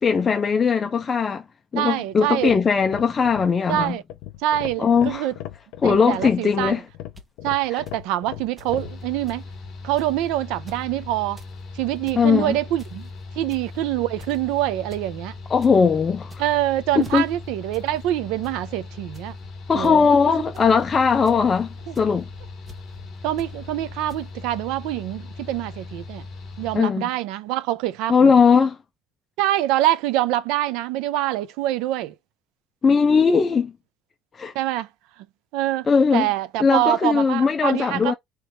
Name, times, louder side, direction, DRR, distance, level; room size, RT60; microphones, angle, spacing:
voice 1, 0.0-1.4 1.7-4.0 4.8-5.3 5.8-6.9 12.2-12.5 15.5-16.3 16.9-17.2 19.7-22.3 26.7-27.1 28.1-28.8 32.8-33.7 34.3-34.5 35.9-36.3 36.6-38.1, left 5 dB, 20° left, 0.4 m, -19 dB
voice 2, 1.8-2.6 3.7-4.0 4.4-5.3 5.8-6.7 7.4-9.4 9.8-11.4 11.7-13.1 13.4-15.3 16.4-19.3 19.7-20.0 21.9-22.0 23.2-26.3 26.6-28.3 29.4-32.1 34.5-34.9 35.5-35.9 36.1-38.1, right 14 dB, 80° right, 0.7 m, -25 dB
sound 1, 2.3-9.0, left 13 dB, 85° left, 0.7 m, -37 dB
sound 2, 7.2-7.3 7.9-8.0 8.6-8.7 9.0-9.4 10.0-10.2 10.5-10.8 11.2-11.5 11.9-12.2 12.8-13.1 13.5-13.8 14.2-14.5 14.9-15.0 15.4-15.7 16.2-16.6 17.0-17.2 17.7-17.9 18.2-18.6 19.1-19.3 19.8-19.9 20.5-20.8 21.2-21.5 21.9-22.1 22.7-22.8 23.4-23.5 24.1-24.2, equal, 10° right, 1.0 m, -46 dB
Mechanical fan, 8.7-26.8, left 3 dB, 40° left, 1.5 m, -39 dB
3.4 x 3.1 x 4.3 m
cardioid pair, 170°, 0 cm